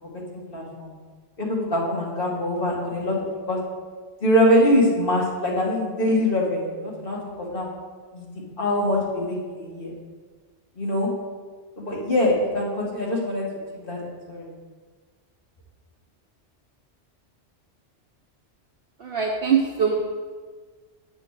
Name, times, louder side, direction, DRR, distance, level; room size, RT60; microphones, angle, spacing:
voice 1, 0.0-0.9 1.4-3.2 3.5-3.6 4.2-7.7 8.1-8.3 8.6-9.9 10.8-11.1 11.8-13.4 13.7-14.5, left 1 dB, 50° left, -4 dB, 2.1 m, -23 dB
voice 2, 19.0-20.0, right 6 dB, 55° right, -1 dB, 1.0 m, -22 dB
8.1 x 4.5 x 7.3 m, 1.5 s
omnidirectional pair, 1.2 m